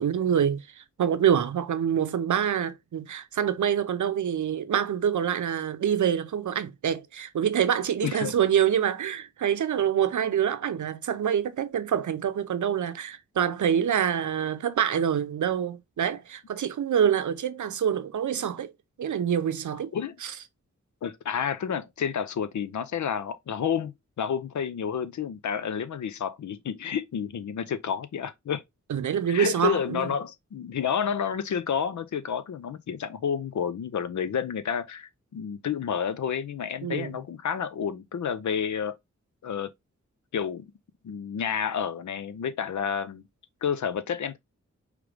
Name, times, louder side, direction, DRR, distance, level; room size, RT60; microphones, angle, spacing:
voice 1, 0.0-18.7 19.0-19.9 20.2-20.3 28.9-30.1 36.8-37.2, right 8 dB, 90° right, 0.6 m, -26 dB
voice 2, 8.0-8.3 19.9-20.2 21.0-28.6 29.3-39.0 39.4-39.7 40.3-40.7 41.0-43.2 43.6-44.4, left 7 dB, 75° left, 0.6 m, -30 dB
5.0 x 3.3 x 3.2 m
wide cardioid pair, 125°, 29 cm